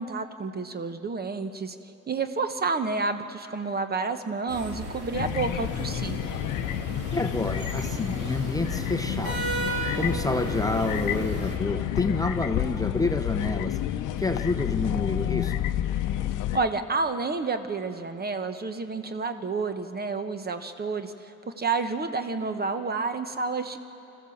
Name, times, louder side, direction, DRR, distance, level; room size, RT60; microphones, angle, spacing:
voice 1, 0.0-1.8 2.1-6.2 16.5-21.1 21.5-23.8, right 4 dB, 30° right, 9 dB, 1.1 m, -29 dB
sound 1, 4.5-11.6, right 2 dB, 50° right, 4.4 m, -35 dB
sound 2, 5.1-16.6, left 12 dB, 85° left, 0.7 m, -30 dB
voice 2, 7.1-13.8 14.2-15.5, left 2 dB, 10° left, 6 dB, 0.8 m, -29 dB
26.0 x 14.5 x 7.2 m, 2.9 s
cardioid pair, 90°, 30 cm